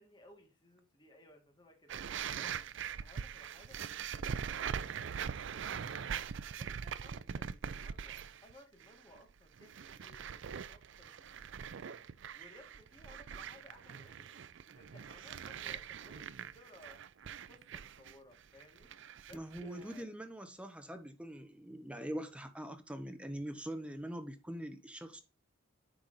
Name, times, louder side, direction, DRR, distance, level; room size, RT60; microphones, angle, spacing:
voice 1, 0.0-2.0 2.3-2.6 3.0-6.2 6.6-12.0 12.3-14.3 14.7-17.0 17.4-18.9 19.2-20.1, left 1 dB, 20° left, 1.6 m, -60 dB
sound 1, 1.9-8.5 8.8-9.2 9.5-20.0, right 7 dB, 60° right, 0.4 m, -42 dB
voice 2, 19.3-25.2, right 1 dB, 5° right, 1.0 m, -43 dB
8.8 x 5.8 x 2.6 m
head